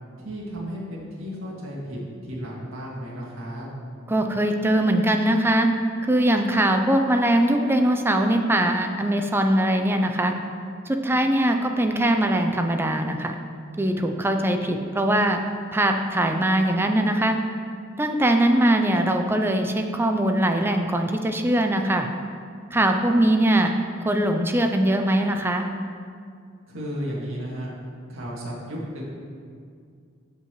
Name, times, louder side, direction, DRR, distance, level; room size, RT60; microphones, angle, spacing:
voice 1, 0.2-3.7 26.7-27.7 28.1-29.1, equal, 75° right, -5 dB, 2.1 m, -33 dB
voice 2, 4.1-5.7 6.1-10.3 10.9-13.4 13.8-15.5 15.7-17.4 18.0-22.1 22.7-23.7 24.0-25.7, right 1 dB, 10° right, 5 dB, 0.4 m, -21 dB
14.5 x 5.6 x 3.1 m, 2.2 s
head